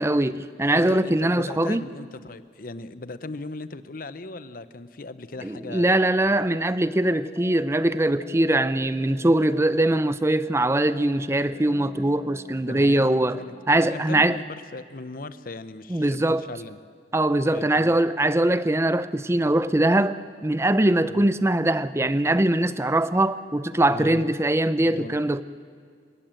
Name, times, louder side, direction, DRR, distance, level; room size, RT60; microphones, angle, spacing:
voice 1, 0.0-1.8 5.4-13.4 13.7-14.4 15.9-16.4 17.1-25.4, right 1 dB, 15° right, 0.5 m, -22 dB
voice 2, 0.7-6.0 6.4-6.5 12.7-13.1 13.3-13.5 13.8-16.8 17.5-18.0 21.1-21.3 23.9-24.2 24.8-25.2, left 2 dB, 50° left, 0.8 m, -37 dB
sound 1, 5.3-14.5, left 1 dB, 25° left, 1.5 m, -48 dB
30.0 x 18.0 x 7.8 m
head